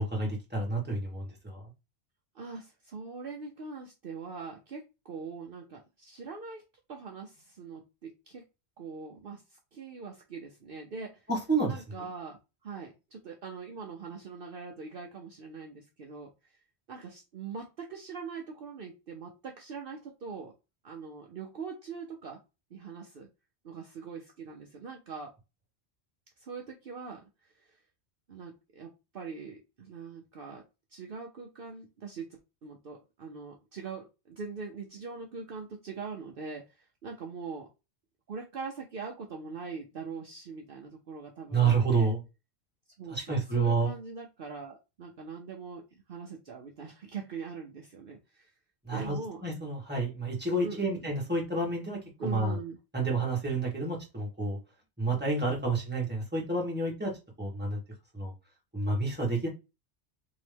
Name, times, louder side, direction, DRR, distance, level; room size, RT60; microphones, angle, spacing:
voice 1, 0.0-1.6 11.3-11.8 41.5-42.2 43.1-43.9 48.8-52.6 52.9-54.6 55.0-57.1 57.4-57.8 58.1-58.3 58.7-59.5, right 3 dB, 10° right, 1.6 m, -29 dB
voice 2, 2.3-6.6 6.9-8.4 8.8-11.2 11.7-16.6 16.9-20.5 20.8-22.4 22.7-23.3 23.6-25.3 26.4-27.8 28.3-30.6 30.9-37.7 38.3-42.1 43.0-48.5 48.9-49.4 50.6-51.1 52.2-52.8, right 5 dB, 55° right, 0.9 m, -42 dB
3.7 x 3.1 x 3.3 m
omnidirectional pair, 1.2 m